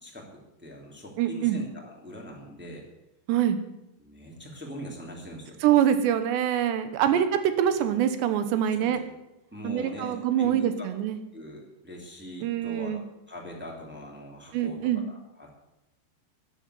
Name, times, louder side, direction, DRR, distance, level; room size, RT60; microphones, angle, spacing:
voice 1, 0.0-2.8 4.0-5.5 6.9-7.2 8.8-9.0 9.5-10.9 11.3-13.0 13.3-15.7, equal, 5° right, -2 dB, 1.7 m, -42 dB
voice 2, 1.2-1.6 3.3-3.6 5.6-7.3 7.6-9.0 9.6-11.2 12.4-13.0 14.5-15.0, right 10 dB, 75° right, 10 dB, 3.1 m, -24 dB
14.0 x 9.9 x 7.7 m, 0.91 s
omnidirectional pair, 5.5 m